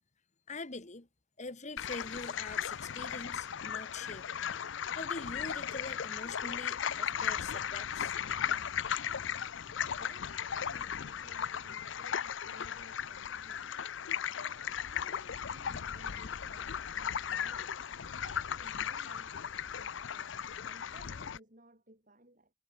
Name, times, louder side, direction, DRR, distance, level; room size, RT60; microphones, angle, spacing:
voice 1, 0.5-1.1 1.4-4.3 4.9-8.1, left 3 dB, 35° left, 1.5 m, -44 dB
sound 1, 1.8-21.4, left 8 dB, 65° left, 0.5 m, -37 dB
voice 2, 9.6-22.5, right 1 dB, 40° right, 7.2 m, -59 dB
sound 2, 15.9-20.9, left 1 dB, 80° left, 5.4 m, -65 dB
head